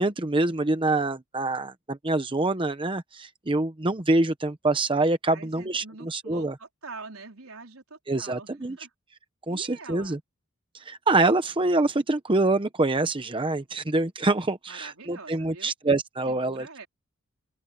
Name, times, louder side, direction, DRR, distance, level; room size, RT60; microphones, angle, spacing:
voice 1, 0.0-6.5 8.1-8.8 9.5-10.2 10.8-16.7, right 2 dB, 25° right, 0.9 m, -25 dB
voice 2, 5.3-8.9 9.5-10.2 14.7-15.7 16.3-16.9, right 3 dB, 80° right, 4.4 m, -44 dB
open air
head